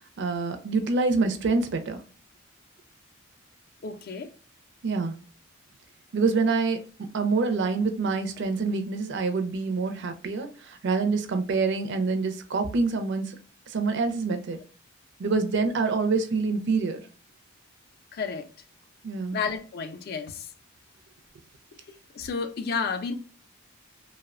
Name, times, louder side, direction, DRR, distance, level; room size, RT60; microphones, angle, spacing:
voice 1, 0.2-2.0 4.8-5.1 6.1-13.3 13.7-14.6 15.2-17.0 19.0-19.4, right 4 dB, 55° right, 0.4 m, -26 dB
voice 2, 3.8-4.3 18.1-18.5 19.3-20.5 22.1-23.1, left 5 dB, 45° left, 0.4 m, -31 dB
3.0 x 2.0 x 2.3 m
head